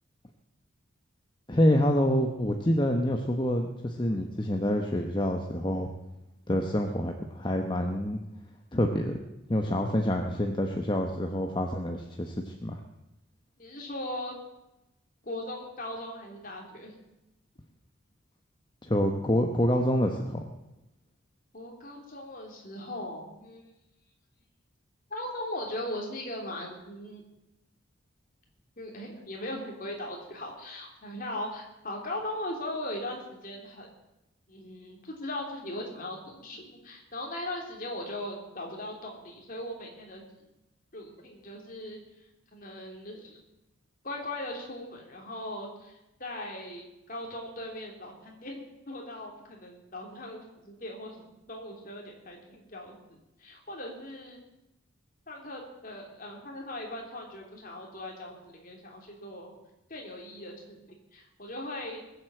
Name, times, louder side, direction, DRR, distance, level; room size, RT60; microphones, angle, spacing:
voice 1, 1.5-5.9 6.5-8.2 8.7-9.2 9.5-12.8 18.8-20.4, equal, 20° left, 3 dB, 0.9 m, -27 dB
voice 2, 13.6-14.3 15.2-16.9 21.5-23.6 25.1-27.2 28.8-33.9 34.5-40.3 40.9-42.0 42.5-43.4 44.0-51.2 51.5-53.0 53.4-54.4 55.3-59.5 59.9-62.0, left 1 dB, 40° left, 0 dB, 3.4 m, -39 dB
20.5 x 7.9 x 7.7 m, 0.92 s
head